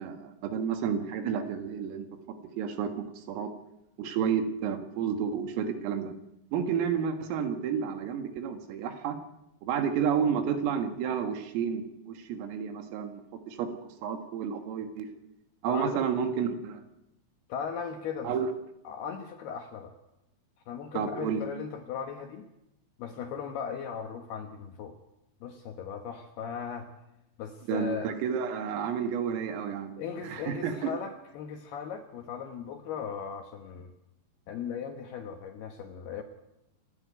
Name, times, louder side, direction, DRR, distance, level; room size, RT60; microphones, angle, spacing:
voice 1, 0.0-2.1 2.6-2.9 3.2-3.5 4.0-6.1 6.5-9.2 9.6-13.2 13.5-13.7 14.0-15.1 15.6-16.8 18.2-18.5 20.9-21.4 27.7-30.9, right 7 dB, 80° right, 6 dB, 4.3 m, -30 dB
voice 2, 15.7-16.0 17.5-18.3 18.8-19.9 20.7-22.5 23.0-25.0 25.4-26.9 27.4-28.1 30.0-33.9 34.5-36.2, left 7 dB, 70° left, 4 dB, 2.5 m, -38 dB
28.0 x 10.5 x 9.3 m, 0.90 s
omnidirectional pair, 6.0 m